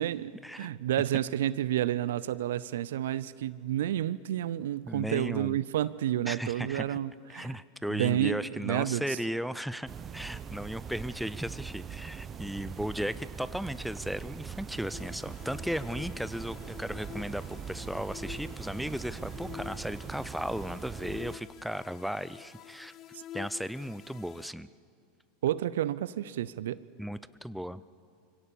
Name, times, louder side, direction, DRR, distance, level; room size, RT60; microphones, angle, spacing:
voice 1, 0.6-7.6 7.9-9.0 23.1-23.2 25.4-26.8, right 12 dB, 70° right, 19 dB, 0.6 m, -30 dB
voice 2, 4.9-5.6 6.3-7.0 7.3-22.9 23.3-24.7 27.0-27.8, equal, ahead, 15 dB, 0.6 m, -36 dB
sound 1, 9.9-21.4, right 7 dB, 30° right, 0.9 m, -42 dB
sound 2, 14.9-24.5, left 12 dB, 40° left, 0.7 m, -48 dB
24.5 x 16.5 x 7.0 m, 2.3 s
hypercardioid pair, 90°, 0 cm